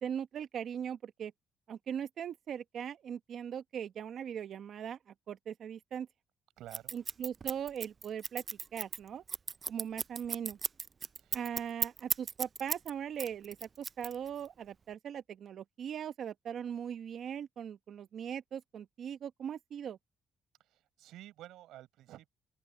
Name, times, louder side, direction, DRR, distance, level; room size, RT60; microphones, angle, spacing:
voice 1, 0.0-1.3 1.7-6.1 6.9-8.4 8.7-9.2 9.7-10.6 11.3-20.0, right 8 dB, 65° right, 0.9 m, -40 dB
voice 2, 6.6-7.0 11.2-11.4 20.6-22.3, right 14 dB, 90° right, 5.8 m, -51 dB
Scissors, 6.7-12.9 13.2-14.5, right 5 dB, 40° right, 0.3 m, -35 dB
open air
cardioid pair, 90°, 0 cm